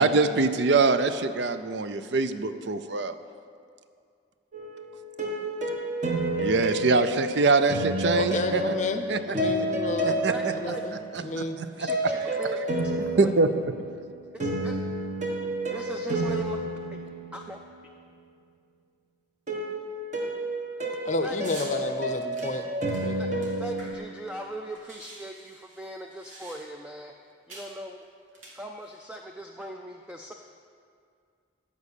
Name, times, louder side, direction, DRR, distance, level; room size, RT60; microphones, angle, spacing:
voice 1, 0.0-3.1 6.4-8.7 9.1-9.2 10.0-10.5 11.3-11.4 11.8-11.9 13.1-13.5, right 3 dB, 60° right, 10 dB, 0.5 m, -23 dB
sound 1, 4.5-11.1 11.9-17.8 19.5-23.9, right 1 dB, 35° right, 1.4 m, -30 dB
voice 2, 8.1-11.7 21.0-22.7 23.0-23.5, left 2 dB, 35° left, 8 dB, 0.6 m, -32 dB
voice 3, 10.3-11.0 11.8-12.7 13.2-13.3 14.3-14.7 15.7-16.6 16.9-17.0 17.3-17.6 21.2-21.4 21.8-21.9 23.2-23.3 23.6-27.1 27.5-28.0 28.5-30.3, right 1 dB, 5° right, 2 dB, 0.4 m, -39 dB
sound 2, 21.4-21.7 22.3-24.2 24.4-24.5 24.7-26.9 27.5-27.7 28.3-29.0, right 2 dB, 80° right, 2.8 m, -46 dB
13.5 x 5.3 x 8.4 m, 2.3 s
head